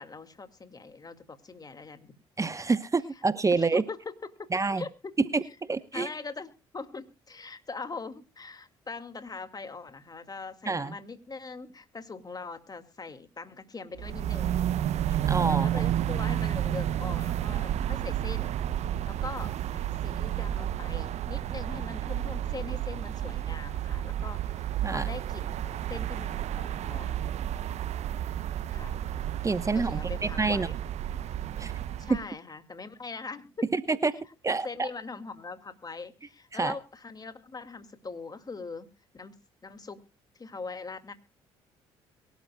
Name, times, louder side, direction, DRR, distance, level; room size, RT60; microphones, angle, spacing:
voice 1, 0.0-2.2 3.6-4.5 4.8-5.1 5.9-14.6 15.5-18.5 19.1-27.2 28.7-28.9 29.7-30.7 32.0-33.6 34.5-38.9 39.1-39.3 39.6-40.0 40.4-41.1, left 4 dB, 30° left, 9 dB, 2.2 m, -41 dB
voice 2, 2.4-3.8 4.5-4.8 5.3-5.4 5.7-6.1 10.7-10.9 15.3-15.7 24.8-25.1 29.4-30.0 30.4-30.7 31.6-31.7 33.7-34.1 34.4-34.9 36.5-36.7, right 4 dB, 25° right, 14 dB, 0.9 m, -27 dB
sound 1, 14.0-32.3, right 11 dB, 60° right, 0.7 m, -31 dB
23.0 x 12.5 x 2.3 m, 0.30 s
hypercardioid pair, 55°, 13 cm